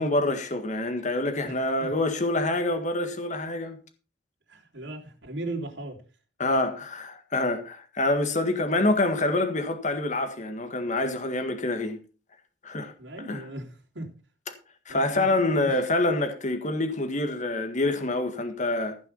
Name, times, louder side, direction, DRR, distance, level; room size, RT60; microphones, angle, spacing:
voice 1, 0.0-3.8 6.4-12.0 12.6-12.9 13.2-13.4 14.9-19.0, left 2 dB, 40° left, 1.7 m, -26 dB
voice 2, 1.4-1.9 2.7-2.8 4.5-6.0 13.0-14.1 14.9-15.8, right 2 dB, 85° right, 3.5 m, -38 dB
15.0 x 6.1 x 5.5 m
head